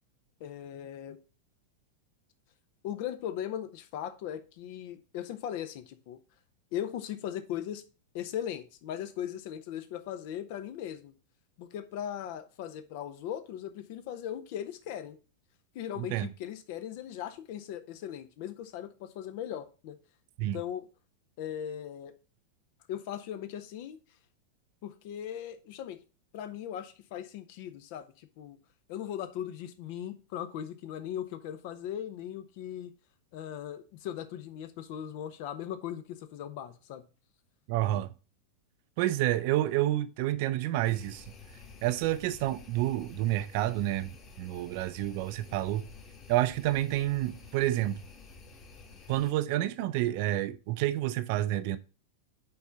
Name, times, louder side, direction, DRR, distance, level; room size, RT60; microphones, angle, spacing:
voice 1, 0.4-1.2 2.8-6.2 6.7-7.8 8.1-11.1 11.6-15.2 15.7-20.0 20.5-20.9 21.4-22.1 22.9-24.0 24.8-26.0 26.3-28.6 28.9-32.9 33.3-37.1, left 10 dB, 45° left, 0.8 m, -38 dB
voice 2, 16.0-16.3 20.4-20.6 37.7-38.1 39.0-41.2 41.8-44.1 44.4-45.8 46.3-48.0 49.1-51.8, right 15 dB, 45° right, 0.5 m, -29 dB
sound 1, 40.8-49.3, left 4 dB, 25° left, 1.5 m, -51 dB
5.4 x 4.5 x 5.7 m
figure-of-eight pair, 90°, 0 cm